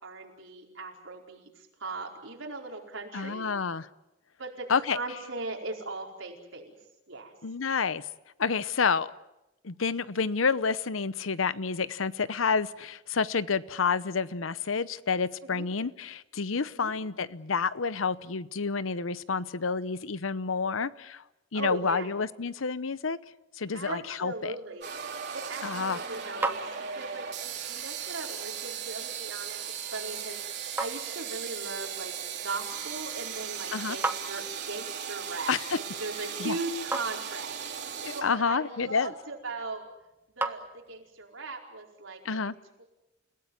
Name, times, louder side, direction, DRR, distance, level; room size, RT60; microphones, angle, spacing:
voice 1, 0.0-3.5 4.4-6.8 7.1-7.3 15.5-15.6 16.7-16.9 21.5-22.1 23.7-24.9 25.3-29.6 29.9-32.1 32.4-37.6 38.1-39.9 40.3-42.2 42.8-42.9, right 3 dB, 80° right, 1 dB, 4.8 m, -39 dB
voice 2, 3.1-3.9 4.7-5.0 7.4-8.1 8.4-9.1 9.6-21.2 21.5-23.2 23.5-24.5 25.6-26.0 33.7-34.0 35.5-35.8 36.4-36.6 38.0-39.1 42.2-42.5, left 5 dB, 85° left, 17 dB, 0.8 m, -29 dB
sound 1, 24.8-38.2, right 8 dB, 60° right, 3.4 m, -37 dB
sound 2, 25.5-41.3, right 2 dB, 10° right, 1.3 m, -41 dB
29.5 x 17.5 x 9.5 m, 0.97 s
head